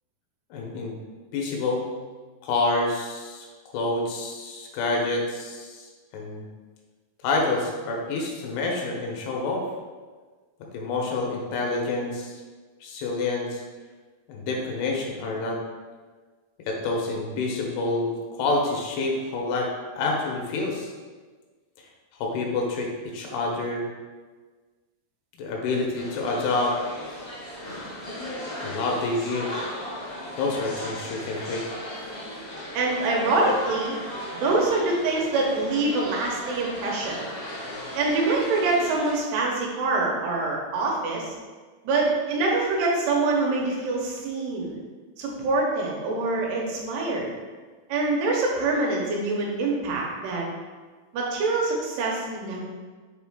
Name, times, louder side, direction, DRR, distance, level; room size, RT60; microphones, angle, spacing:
voice 1, 0.5-1.0 1.3-1.9 2.4-3.5 3.7-5.9 6.1-6.5 7.2-9.6 10.7-12.4 12.8-13.6 14.3-15.6 16.7-18.1 18.4-19.7 20.0-20.9 22.2-23.8 25.4-26.7 28.6-29.5 30.4-31.6, left 3 dB, 85° left, -1 dB, 3.0 m, -27 dB
sound 1, 26.0-39.1, left 1 dB, 50° left, 0.7 m, -36 dB
voice 2, 32.7-34.0 34.3-37.2 37.9-41.3 41.8-44.7 45.2-47.3 47.9-50.5 51.1-52.6, right 3 dB, 85° right, -2 dB, 3.0 m, -25 dB
6.8 x 4.1 x 3.7 m, 1.4 s
omnidirectional pair, 4.7 m